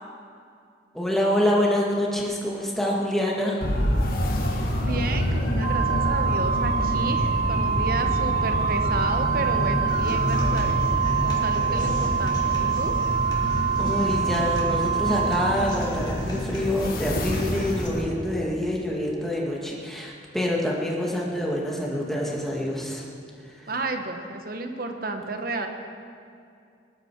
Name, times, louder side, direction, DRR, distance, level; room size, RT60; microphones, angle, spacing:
voice 1, 0.9-3.6 13.8-23.1 23.6-23.7, left 1 dB, ahead, -3 dB, 2.0 m, -26 dB
sound 1, 3.6-18.0, equal, 55° left, 2.0 m, -27 dB
voice 2, 4.8-10.9 11.2-13.0 23.7-25.7, right 2 dB, 55° right, 5 dB, 1.2 m, -32 dB
Organ, 5.6-16.4, right 7 dB, 30° right, 1.1 m, -26 dB
Human voice / Acoustic guitar, 9.9-17.9, equal, 25° left, 2.7 m, -39 dB
19.5 x 11.5 x 4.7 m, 2.4 s
head